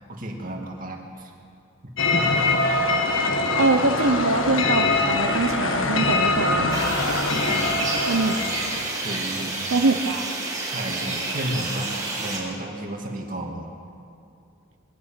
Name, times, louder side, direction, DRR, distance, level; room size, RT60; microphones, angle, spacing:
voice 1, 0.1-1.3 2.1-2.5 7.5-7.8 9.0-9.8 10.1-10.3 10.7-11.9 12.2-13.7, right 1 dB, 40° right, 1 dB, 2.6 m, -32 dB
sound 1, 2.0-9.0, left 2 dB, 65° left, 1.7 m, -23 dB
voice 2, 3.6-6.8 8.1-8.3 9.7-10.3, right 3 dB, 75° right, 5 dB, 0.9 m, -23 dB
sound 2, 6.7-12.4, right 3 dB, 20° right, 5.0 m, -29 dB
22.5 x 12.5 x 9.3 m, 2.5 s
head